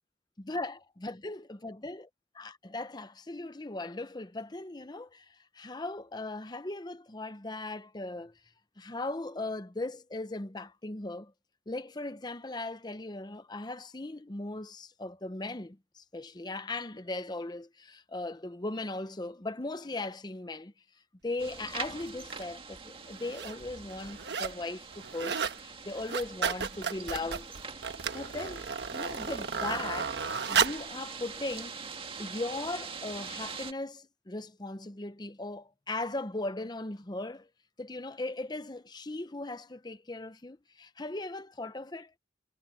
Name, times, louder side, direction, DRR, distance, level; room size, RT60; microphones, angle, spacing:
voice 1, 0.4-2.1 2.4-8.3 8.8-11.3 11.7-20.7 21.2-27.5 28.1-28.7 28.9-30.2 30.5-31.8 32.2-37.5 37.8-42.1, left 2 dB, 20° left, 0.8 m, -38 dB
sound 1, 21.4-33.7, right 5 dB, 30° right, 2.0 m, -44 dB
sound 2, 22.3-22.4 23.1-23.6 23.9-24.6 24.9-25.6 25.9-30.9 31.6-31.7, right 6 dB, 65° right, 1.3 m, -33 dB
head